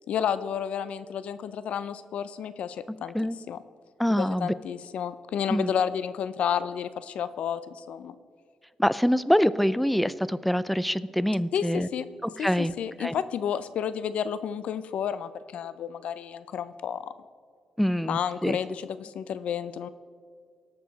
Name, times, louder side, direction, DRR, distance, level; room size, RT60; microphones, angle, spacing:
voice 1, 0.1-3.6 4.2-8.1 11.5-12.1 12.4-17.0 18.1-19.9, left 8 dB, 70° left, 14 dB, 0.5 m, -31 dB
voice 2, 4.0-4.5 5.5-5.7 8.8-11.9 12.4-12.7 13.0-13.1 17.8-18.6, equal, ahead, 17 dB, 0.4 m, -25 dB
18.0 x 6.9 x 4.0 m, 2.1 s
cardioid pair, 115°, 2 cm